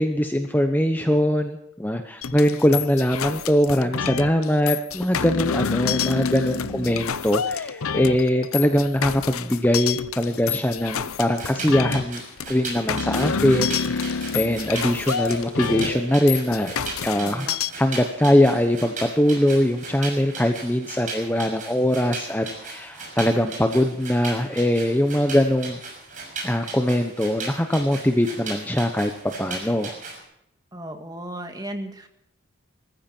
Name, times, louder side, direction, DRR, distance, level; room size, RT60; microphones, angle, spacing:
voice 1, 0.0-16.7 17.0-17.5 17.8-25.8 26.4-29.1 29.4-29.9, left 1 dB, 10° left, 6 dB, 0.9 m, -22 dB
sound 1, 2.2-17.7, left 6 dB, 90° left, 0.7 m, -28 dB
voice 2, 6.6-7.1 17.2-17.6 30.7-32.1, right 1 dB, 20° right, 6 dB, 1.8 m, -36 dB
sound 2, 11.2-30.2, right 3 dB, 40° right, 6.3 m, -37 dB
20.5 x 14.5 x 4.5 m, 0.76 s
head